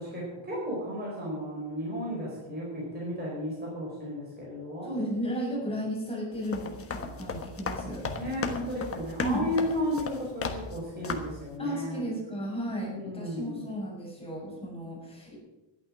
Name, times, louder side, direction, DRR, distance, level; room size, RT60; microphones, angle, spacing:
voice 1, 0.0-4.9 8.1-12.1 12.8-13.7, left 1 dB, 20° right, -4 dB, 4.7 m, -34 dB
voice 2, 4.8-8.0 9.2-9.5 11.6-15.3, equal, 10° left, -5 dB, 6.6 m, -34 dB
sound 1, 6.3-10.8 11.0-11.4, left 4 dB, 25° left, 1.3 m, -35 dB
13.0 x 11.5 x 6.3 m, 1.0 s
cardioid pair, 170°, 50 cm